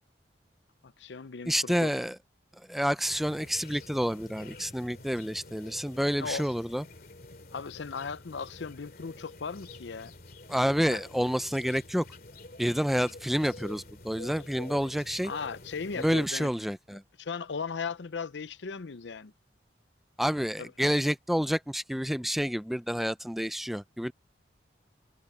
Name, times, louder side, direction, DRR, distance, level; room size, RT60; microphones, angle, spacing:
voice 1, 0.8-1.9 6.2-6.5 7.5-10.1 10.9-11.0 15.2-16.5 17.2-19.3 20.6-20.7, left 5 dB, 85° left, 0.6 m, -37 dB
voice 2, 1.5-2.2 2.7-6.8 10.5-12.0 12.6-15.3 16.0-17.0 20.2-24.1, equal, ahead, 0.4 m, -29 dB
sound 1, 3.0-16.3, left 2 dB, 55° left, 2.4 m, -48 dB
head